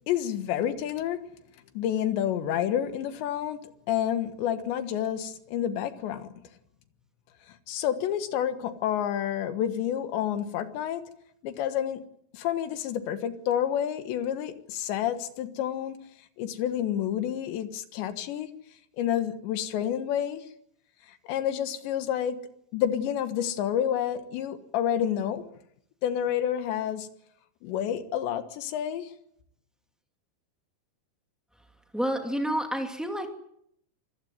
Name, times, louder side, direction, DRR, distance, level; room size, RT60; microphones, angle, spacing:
voice 1, 0.1-1.2 1.8-3.6 3.9-6.3 7.7-11.0 11.4-12.0 12.3-16.0 16.4-18.5 19.0-20.4 21.1-25.5 26.0-27.1 27.6-29.1, left 10 dB, 80° left, 3.7 m, -29 dB
voice 2, 31.9-33.3, equal, ahead, 0.3 m, -29 dB
25.0 x 15.0 x 9.5 m
omnidirectional pair, 5.0 m